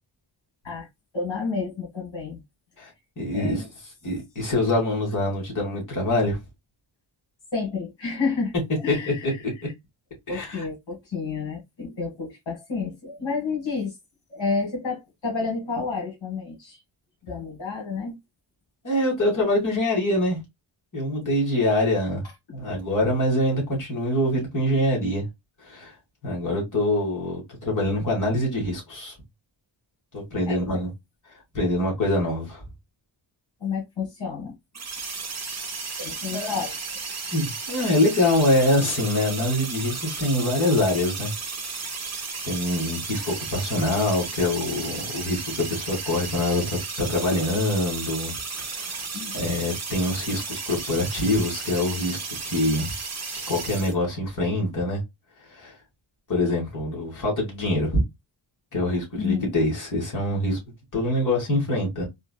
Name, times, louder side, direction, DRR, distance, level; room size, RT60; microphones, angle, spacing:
voice 1, 1.1-2.4 3.3-3.7 7.5-8.5 8.8-9.4 10.3-13.9 14.3-16.8 17.2-18.2 30.5-30.8 33.6-34.5 36.0-36.8 49.1-49.4 59.2-59.5, left 4 dB, 70° left, 1.9 m, -30 dB
voice 2, 3.2-3.6 4.0-6.4 8.9-9.3 10.3-10.6 18.8-20.4 20.9-22.2 22.5-25.3 25.6-26.0 26.2-29.1 30.1-30.9 31.3-32.6 36.3-36.6 37.3-41.3 42.4-48.3 48.6-49.1 49.3-52.9 53.3-55.0 55.5-55.8 56.3-58.0 58.7-60.6 60.9-62.0, left 1 dB, 40° left, 1.8 m, -25 dB
sound 1, 34.7-53.9, right 4 dB, 35° right, 0.9 m, -34 dB
3.6 x 2.5 x 2.3 m
wide cardioid pair, 130°, 47 cm